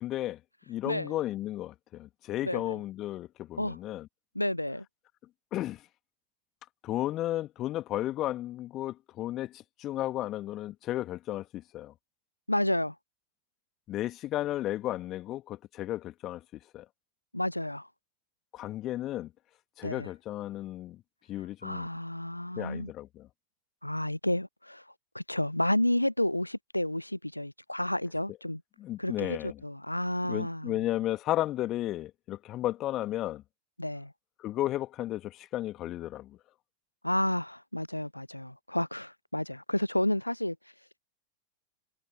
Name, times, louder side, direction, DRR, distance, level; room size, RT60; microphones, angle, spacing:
voice 1, 0.0-0.4 0.7-4.1 5.5-5.8 6.8-11.9 13.9-16.4 16.7-16.8 18.5-19.3 19.8-21.0 21.3-21.9 22.6-23.3 28.8-29.5 30.2-33.4 34.4-36.4, left 14 dB, 35° left, 2.7 m, -34 dB
voice 2, 0.8-1.2 2.4-2.8 3.6-3.8 4.3-4.9 12.5-13.0 17.3-17.9 19.8-20.1 21.6-22.9 23.8-24.8 25.1-28.6 29.0-30.9 33.8-34.1 37.0-40.6, left 1 dB, 85° left, 0.5 m, -31 dB
figure-of-eight pair, 90°, 0 cm